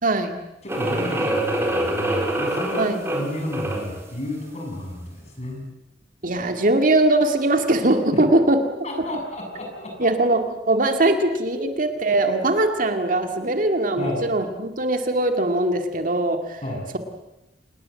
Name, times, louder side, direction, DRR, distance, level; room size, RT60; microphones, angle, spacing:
voice 1, 0.0-0.4 2.8-3.0 6.2-8.6 10.0-16.6, right 2 dB, 50° right, 6 dB, 2.2 m, -21 dB
voice 2, 0.6-5.6 8.1-8.2 8.8-10.1 11.5-11.7 13.4-13.6 14.0-14.3 16.6-16.8, left 1 dB, 40° left, 2 dB, 7.3 m, -32 dB
sound 1, 0.7-4.0, right 1 dB, 15° right, 4.3 m, -25 dB
27.0 x 21.0 x 7.8 m, 0.95 s
head